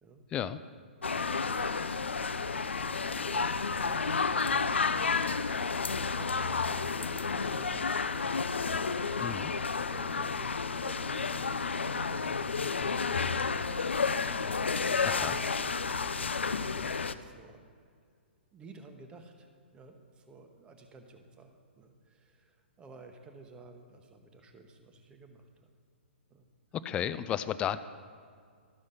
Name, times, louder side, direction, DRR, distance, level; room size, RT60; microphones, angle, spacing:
sound 1, 1.0-17.1, left 5 dB, 80° left, 0.4 m, -31 dB
voice 1, 1.0-1.3 1.8-8.0 9.2-9.5 9.9-14.0 15.2-17.9 18.5-25.7 26.3-26.5, right 3 dB, 15° right, 5 dB, 1.0 m, -54 dB
voice 2, 9.2-9.5 15.0-15.4 26.8-27.8, left 10 dB, 15° left, 13 dB, 0.3 m, -33 dB
12.0 x 6.2 x 5.6 m, 2.1 s
figure-of-eight pair, 125°, 6 cm